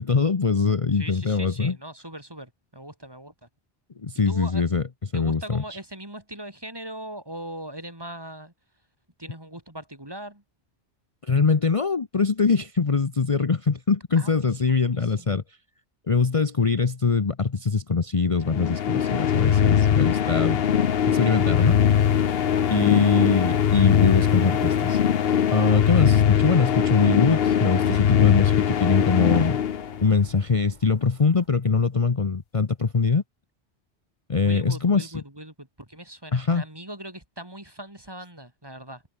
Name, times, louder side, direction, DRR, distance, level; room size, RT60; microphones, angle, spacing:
voice 1, 0.0-1.8 4.0-4.8 5.1-5.6 11.2-15.6 16.1-20.6 21.1-22.1 22.7-25.0 25.5-29.6 30.0-33.2 34.3-35.2 36.3-36.6, left 5 dB, 30° left, 0.9 m, -22 dB
voice 2, 0.9-3.5 4.1-4.6 5.1-8.5 9.2-10.4 14.2-14.5 14.8-15.4 22.4-23.0 34.4-39.0, right 1 dB, 20° right, 3.8 m, -40 dB
sound 1, 18.5-30.3, left 8 dB, 60° left, 1.0 m, -21 dB
sound 2, 20.7-31.5, right 1 dB, 40° right, 6.5 m, -48 dB
omnidirectional pair, 1.2 m